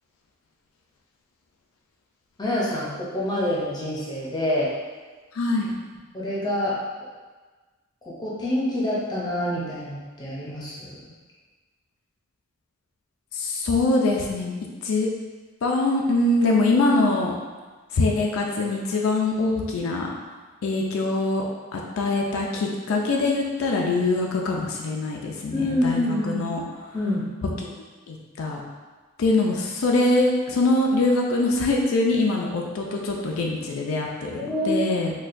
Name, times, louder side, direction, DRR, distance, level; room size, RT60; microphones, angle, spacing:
voice 1, 2.4-4.7 6.1-6.8 8.0-11.0 25.5-26.4 26.9-27.3 34.4-34.9, left 1 dB, 20° left, -6 dB, 0.7 m, -26 dB
voice 2, 5.3-5.7 13.3-14.5 14.8-15.1 15.6-17.3 17.9-20.1 20.6-21.4 21.7-26.6 28.1-28.6 29.2-34.4 34.6-35.1, left 2 dB, 70° left, 0 dB, 0.4 m, -23 dB
4.2 x 2.3 x 2.5 m, 1.3 s
head